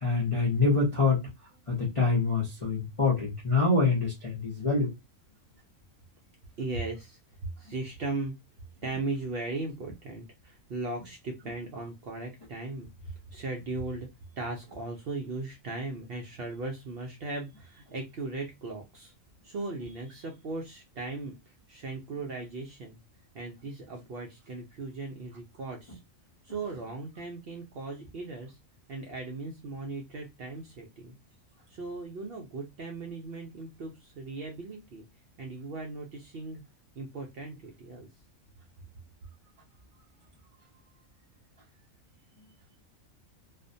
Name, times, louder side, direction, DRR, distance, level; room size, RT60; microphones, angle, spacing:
voice 1, 0.0-1.2 1.7-4.9, left 3 dB, 40° left, 0.5 m, -25 dB
voice 2, 6.6-8.3 8.8-14.1 14.4-19.1 19.4-21.3 21.7-23.0 23.3-26.0 26.4-28.6 28.9-31.1 31.7-35.0 35.4-36.6 37.0-38.1, right 3 dB, 60° right, 0.6 m, -38 dB
2.4 x 2.1 x 2.6 m
omnidirectional pair, 1.4 m